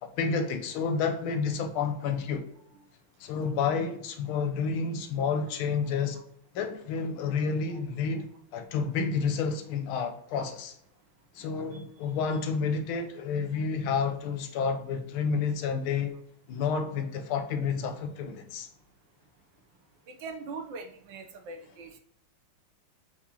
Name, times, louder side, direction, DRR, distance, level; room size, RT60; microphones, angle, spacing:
voice 1, 0.0-2.5 3.2-6.2 6.5-10.7 11.3-16.2 16.5-18.7, left 5 dB, 85° left, 1.5 m, -30 dB
voice 2, 11.4-11.8 20.1-22.0, right 4 dB, 70° right, 1.3 m, -42 dB
4.7 x 3.6 x 2.8 m
omnidirectional pair, 2.2 m